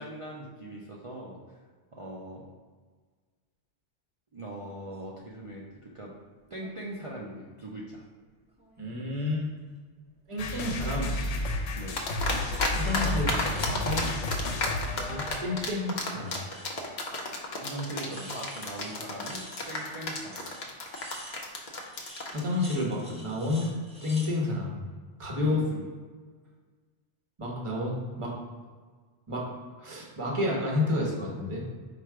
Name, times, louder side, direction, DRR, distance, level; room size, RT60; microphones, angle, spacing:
voice 1, 0.0-1.4 1.9-2.5 4.3-6.1 6.5-8.0 11.7-12.0 17.6-20.4 25.3-25.8, right 1 dB, 60° right, -4 dB, 0.3 m, -40 dB
sound 1, 4.7-5.0 6.4-6.7 7.1-8.0 8.5-9.4 11.1-11.6 12.4-15.5 15.8-16.9 17.2-17.4 17.6-24.4, equal, 5° right, 0.6 m, -50 dB
voice 2, 8.8-9.4 10.3-11.2 12.4-14.1 14.9-16.3 22.3-23.7 24.0-24.7 25.2-25.6 27.4-28.3 29.3-29.5 29.8-31.6, left 2 dB, 30° right, -2 dB, 0.9 m, -30 dB
sound 2, 10.4-15.7, left 1 dB, 85° left, 0.9 m, -32 dB
sound 3, 12.0-12.7 12.9-22.4, left 3 dB, 50° left, 0.6 m, -31 dB
4.6 x 2.5 x 4.6 m, 1.5 s
omnidirectional pair, 1.2 m